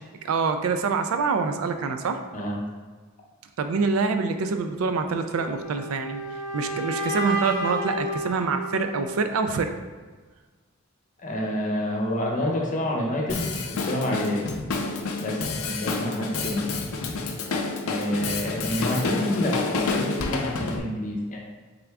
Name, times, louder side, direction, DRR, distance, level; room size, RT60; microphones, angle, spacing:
voice 1, 0.2-2.2 3.6-6.2 6.5-9.7, right 4 dB, 80° right, 8 dB, 0.4 m, -26 dB
sound 1, 5.3-9.4, right 1 dB, 20° right, 1.1 m, -31 dB
voice 2, 11.2-14.5 15.2-16.7 17.9-21.4, equal, 35° left, -1 dB, 0.7 m, -28 dB
Drum kit, 13.3-20.8, left 3 dB, 80° left, 0.5 m, -29 dB
3.6 x 3.5 x 3.4 m, 1.4 s
head